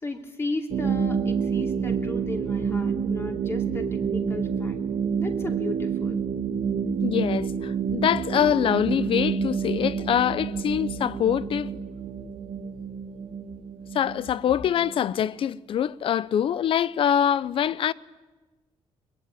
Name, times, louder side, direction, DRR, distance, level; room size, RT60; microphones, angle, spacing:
voice 1, 0.0-4.8 5.2-6.2, left 2 dB, 25° left, 2.7 m, -35 dB
sound 1, 0.7-15.1, right 6 dB, 60° right, 1.5 m, -28 dB
voice 2, 7.0-11.7 13.9-17.9, left 9 dB, 55° left, 0.7 m, -24 dB
22.5 x 20.5 x 9.2 m
cardioid pair, 125°, 11 cm